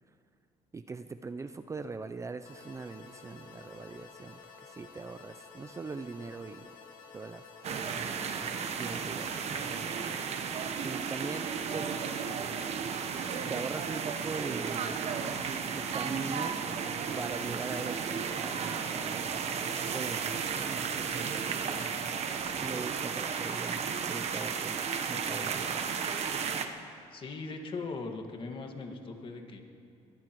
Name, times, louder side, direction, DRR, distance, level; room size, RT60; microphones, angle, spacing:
voice 1, 0.7-6.7 7.1-7.4 8.3-10.1 10.8-12.0 13.1-13.2 13.5-15.0 15.7-16.6 17.2-19.3 19.9-21.9 22.6-23.8 24.1-25.9, right 4 dB, 25° right, 10 dB, 0.5 m, -41 dB
sound 1, 2.4-10.2, left 5 dB, 85° left, 2.6 m, -52 dB
sound 2, 7.6-26.7, right 6 dB, 55° right, 1.0 m, -34 dB
voice 2, 27.1-29.6, left 3 dB, 40° left, 4 dB, 1.8 m, -39 dB
22.5 x 16.5 x 3.1 m, 2.6 s
cardioid pair, 100°, 13 cm